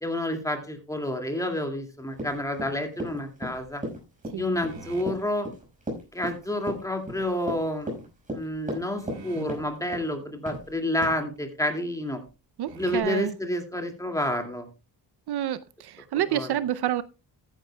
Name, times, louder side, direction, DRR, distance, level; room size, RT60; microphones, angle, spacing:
voice 1, 0.0-3.8 4.3-5.5 6.1-8.0 8.3-12.2 12.8-14.7 16.1-16.6, left 1 dB, 10° left, 2.2 m, -29 dB
Run, 2.1-9.2 9.5-10.1 10.5-10.7 11.0-11.1, right 1 dB, 20° right, 5.5 m, -35 dB
sound 1, 4.4-5.2 7.6-8.0 8.5-8.6 9.0-9.8 10.3-10.4 10.6-10.8 11.4-11.5 12.3-12.4 12.7-13.0, right 3 dB, 85° right, 4.4 m, -44 dB
voice 2, 12.6-13.3 15.3-17.0, right 11 dB, 65° right, 0.6 m, -28 dB
14.5 x 10.0 x 2.2 m
cardioid pair, 110°, 42 cm